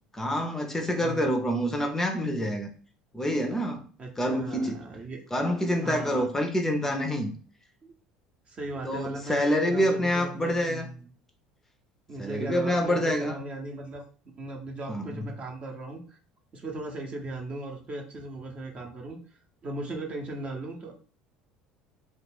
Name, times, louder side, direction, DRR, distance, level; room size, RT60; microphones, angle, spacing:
voice 1, 0.1-2.7 3.1-3.8 4.2-4.8 5.3-7.3 8.8-10.9 12.2-13.4 14.9-15.3, equal, 15° left, 0.5 m, -27 dB
voice 2, 4.0-5.2 5.8-6.3 7.8-7.9 8.5-11.1 12.1-14.0 14.4-16.2 16.5-19.2 19.6-20.9, right 2 dB, 35° right, 0.7 m, -37 dB
2.4 x 2.3 x 3.3 m
hypercardioid pair, 65°, 3 cm